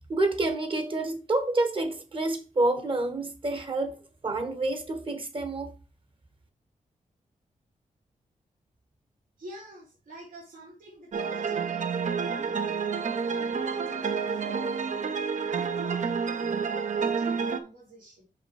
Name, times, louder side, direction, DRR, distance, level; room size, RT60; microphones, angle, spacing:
voice 1, 0.1-4.0 4.2-5.7, right 2 dB, 40° right, 1.3 m, -28 dB
voice 2, 9.4-11.9 12.2-12.8 13.0-15.0 15.5-18.2, right 1 dB, 85° right, 3.3 m, -47 dB
sound 1, 11.1-17.6, right 5 dB, 60° right, 0.8 m, -29 dB
5.8 x 5.2 x 4.8 m
wide cardioid pair, 140°, 14 cm